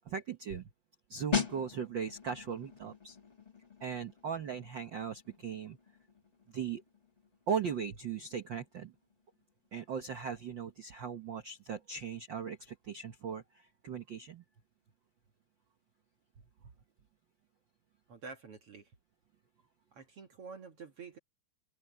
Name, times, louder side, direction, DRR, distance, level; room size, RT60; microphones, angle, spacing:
voice 1, 0.1-0.7 1.1-3.2 3.8-5.8 6.5-6.8 7.5-8.9 9.7-14.4, right 7 dB, 75° right, 1.0 m, -38 dB
sound 1, 1.3-11.8 12.1-12.4, left 6 dB, 20° left, 1.1 m, -42 dB
voice 2, 18.1-18.9 19.9-21.2, right 5 dB, 50° right, 2.3 m, -48 dB
open air
omnidirectional pair, 3.8 m